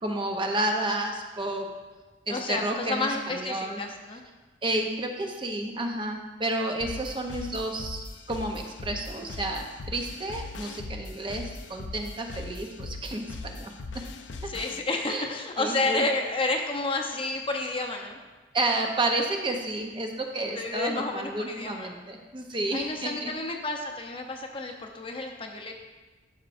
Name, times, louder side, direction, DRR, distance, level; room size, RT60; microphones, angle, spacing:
voice 1, 0.0-1.7 2.3-3.8 4.6-13.7 14.4-14.5 15.1-15.2 15.6-16.0 18.5-23.3, right 2 dB, 25° right, 2 dB, 0.6 m, -31 dB
voice 2, 2.3-4.2 14.5-18.2 20.5-21.9 22.7-25.7, left 2 dB, 30° left, 3 dB, 0.7 m, -30 dB
sound 1, 6.8-14.8, left 3 dB, 70° left, 0.5 m, -40 dB
12.0 x 6.0 x 2.5 m, 1.3 s
head